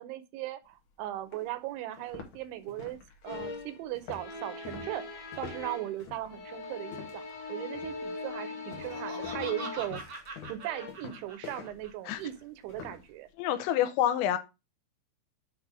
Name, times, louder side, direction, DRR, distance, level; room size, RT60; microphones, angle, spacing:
voice 1, 0.0-3.0 3.2-7.2 7.5-10.2 10.5-13.3, right 14 dB, 80° right, 3.0 m, -38 dB
sound 1, 0.7-0.8 1.3-1.4 1.9-7.4 7.7-8.1 8.7-13.1, left 7 dB, 65° left, 1.9 m, -47 dB
sound 2, 3.3-3.8 4.1-6.0 6.3-10.1 10.6-10.9, left 3 dB, 45° left, 2.3 m, -40 dB
Laughter, 8.6-11.9, right 3 dB, 50° right, 1.4 m, -43 dB
voice 2, 13.4-14.4, left 11 dB, 80° left, 2.8 m, -27 dB
8.2 x 3.3 x 6.0 m
omnidirectional pair, 5.5 m